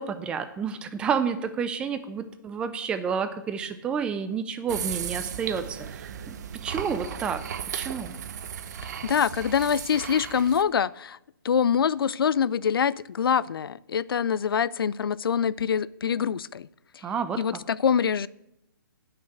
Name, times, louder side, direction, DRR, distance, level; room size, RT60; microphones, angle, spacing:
voice 1, 0.0-7.4 7.7-8.1 17.0-17.6, right 6 dB, 10° right, 10 dB, 0.4 m, -30 dB
sound 1, 4.7-10.6, right 8 dB, 50° right, 0.7 m, -36 dB
voice 2, 9.0-11.2 11.4-16.7 16.9-17.0 17.4-18.3, left 7 dB, 85° left, 20 dB, 0.4 m, -25 dB
8.3 x 5.8 x 7.9 m, 0.86 s
hypercardioid pair, 155°, 12 cm